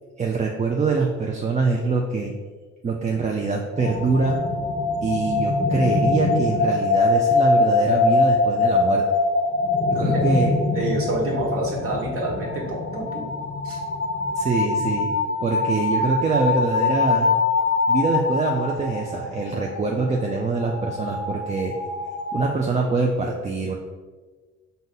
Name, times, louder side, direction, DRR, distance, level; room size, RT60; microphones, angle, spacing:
voice 1, 0.2-2.3 2.8-4.4 5.0-9.0 9.9-10.6 14.4-15.1 15.4-17.3 17.9-21.7 22.3-23.8, right 4 dB, 25° right, 1 dB, 0.4 m, -24 dB
sound 1, 3.8-22.4, left 3 dB, 40° left, 0.6 m, -23 dB
voice 2, 10.7-13.3 13.6-13.8, right 1 dB, 50° right, -3 dB, 1.3 m, -27 dB
4.0 x 2.7 x 3.9 m, 1.4 s
cardioid pair, 90°, 30 cm